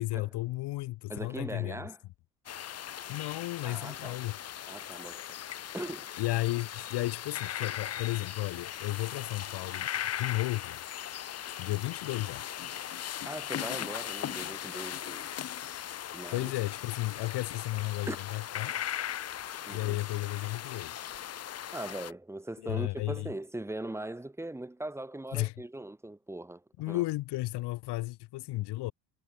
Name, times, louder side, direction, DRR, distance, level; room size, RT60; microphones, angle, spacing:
voice 1, 0.0-1.9 3.1-4.3 6.2-9.9 10.1-10.8 11.6-12.4 16.3-18.8 19.7-21.1 22.6-23.3 25.3-25.5 26.8-28.9, left 18 dB, 70° left, 3.6 m, -33 dB
voice 2, 1.1-2.0 3.6-4.2 4.7-5.3 5.7-6.1 13.2-15.3 16.1-16.5 18.1-18.2 19.7-20.0 21.7-27.0, right 1 dB, 5° right, 4.3 m, -40 dB
sound 1, 2.5-22.1, left 10 dB, 35° left, 1.8 m, -39 dB
cardioid pair, 170°, 42 cm